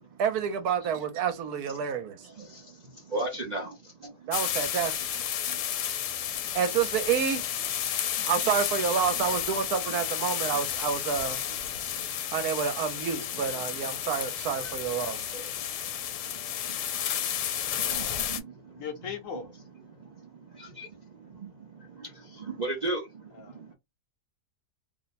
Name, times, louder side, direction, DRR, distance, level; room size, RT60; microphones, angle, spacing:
voice 1, 0.2-2.3 4.3-5.0 6.5-7.4 8.2-11.5 12.3-15.3, right 7 dB, 75° right, 1.1 m, -29 dB
voice 2, 2.2-4.3 5.5-6.4 8.1-8.3 10.5-10.6 11.7-12.1 12.8-12.9 13.5-13.7 14.6-16.3 16.9-18.9 19.8-23.7, right 2 dB, 45° right, 0.5 m, -39 dB
sound 1, 4.3-18.4, left 10 dB, 90° left, 1.2 m, -32 dB
voice 3, 18.8-19.5 23.3-23.7, left 6 dB, 65° left, 0.9 m, -38 dB
2.8 x 2.1 x 4.0 m
omnidirectional pair, 1.7 m